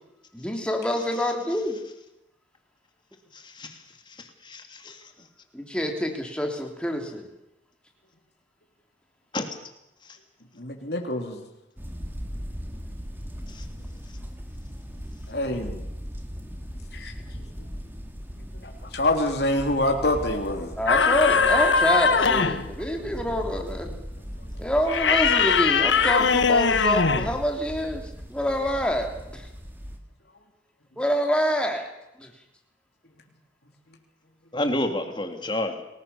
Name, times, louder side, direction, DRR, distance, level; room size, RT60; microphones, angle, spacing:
voice 1, 0.3-1.8 5.5-7.3 20.8-23.9 24.6-29.5 31.0-31.9 32.2-32.3, equal, 5° left, 3 dB, 3.3 m, -27 dB
voice 2, 3.3-5.3 9.3-9.5 10.0-10.2 13.5-13.6 34.5-35.9, left 1 dB, 25° left, 6 dB, 2.8 m, -31 dB
voice 3, 10.6-11.4 15.3-15.8 16.9-17.1 18.6-20.7, left 1 dB, 55° left, 2 dB, 3.6 m, -26 dB
sound 1, 11.8-30.0, equal, 10° right, 2.5 m, -38 dB
sound 2, 20.9-22.7 24.9-27.4, left 5 dB, 70° left, 1.5 m, -20 dB
29.5 x 20.0 x 7.2 m, 0.89 s
head